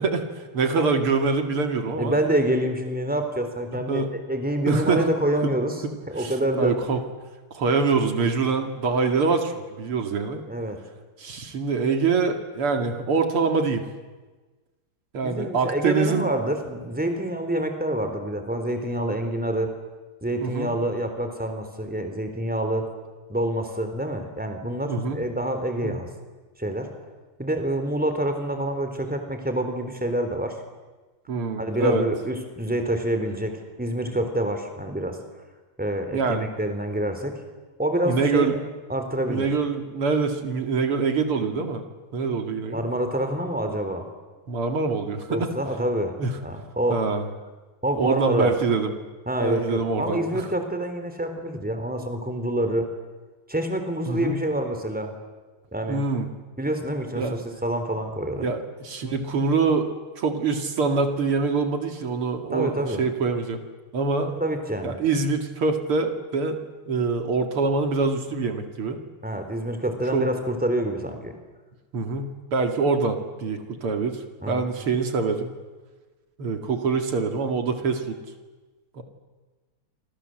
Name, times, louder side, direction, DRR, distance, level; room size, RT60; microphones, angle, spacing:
voice 1, 0.0-2.2 3.9-4.1 4.7-5.0 5.4-5.5 5.8-7.0 7.5-10.4 11.2-13.8 15.1-16.3 20.4-20.7 24.9-25.2 25.8-26.0 31.3-32.0 36.1-36.4 38.0-38.5 39.3-41.8 42.1-42.8 44.5-45.5 46.2-46.3 46.9-47.2 48.0-48.9 49.4-50.5 54.1-54.4 55.9-56.3 57.2-57.3 58.3-59.9 60.2-63.6 63.9-64.3 64.8-66.6 66.9-69.0 70.1-70.3 71.9-75.5 76.4-78.2 78.9-79.0, right 4 dB, 80° right, 6 dB, 3.3 m, -25 dB
voice 2, 2.0-5.8 6.1-6.7 10.5-10.8 15.2-19.7 20.2-22.9 23.3-26.1 26.6-26.9 27.4-30.6 31.6-35.2 35.8-37.4 37.8-38.6 38.9-39.5 42.7-44.1 45.3-46.2 46.4-47.0 47.8-48.5 49.3-52.9 53.5-55.1 55.7-56.0 56.6-58.4 62.5-63.0 64.3-65.0 69.2-71.3 74.4-74.7, right 1 dB, 5° right, 6 dB, 3.5 m, -27 dB
29.0 x 26.0 x 7.8 m, 1.3 s
omnidirectional pair, 2.4 m